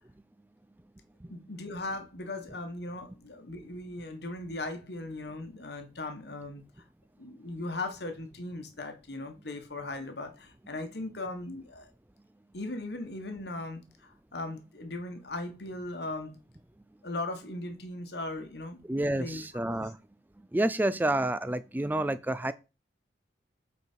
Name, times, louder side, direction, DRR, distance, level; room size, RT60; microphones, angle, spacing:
voice 1, 1.3-6.6 7.2-11.9 12.5-16.4 17.0-18.8 19.2-19.4 19.8-19.9, left 2 dB, 60° left, 1.2 m, -38 dB
voice 2, 18.8-20.0 20.4-22.5, right 1 dB, 10° right, 0.3 m, -29 dB
8.2 x 4.6 x 4.4 m
head